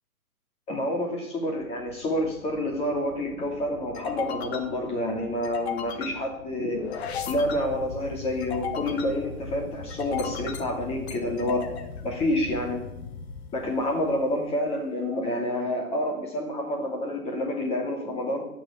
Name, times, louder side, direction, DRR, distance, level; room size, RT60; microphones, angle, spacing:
voice 1, 0.7-6.8 7.3-11.7 12.0-12.8 13.5-18.5, left 1 dB, 15° left, 1 dB, 2.4 m, -28 dB
sound 1, 1.6-14.4, left 6 dB, 45° left, 1.5 m, -37 dB
13.0 x 6.5 x 8.5 m, 0.84 s
hypercardioid pair, 150°, 43 cm